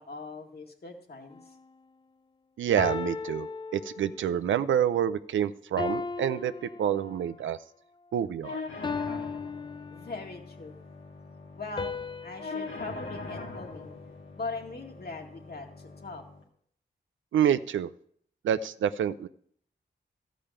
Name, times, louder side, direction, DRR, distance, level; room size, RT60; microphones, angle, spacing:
voice 1, 0.0-1.6 9.9-10.8 11.6-13.9 14.3-16.2, left 3 dB, 55° left, 2 dB, 2.2 m, -41 dB
sound 1, 1.3-1.6 2.8-4.4 5.8-7.4 8.8-10.5 11.8-14.2, left 4 dB, 25° left, 0.4 m, -37 dB
voice 2, 2.6-3.5 3.7-6.5 6.8-7.6 8.1-8.6 17.3-17.9 18.4-19.3, right 9 dB, 90° right, 13 dB, 0.5 m, -27 dB
sound 2, 8.4-16.4, left 3 dB, 90° left, 2.1 m, -42 dB
13.0 x 5.2 x 8.7 m, 0.64 s
cardioid pair, 50°, 19 cm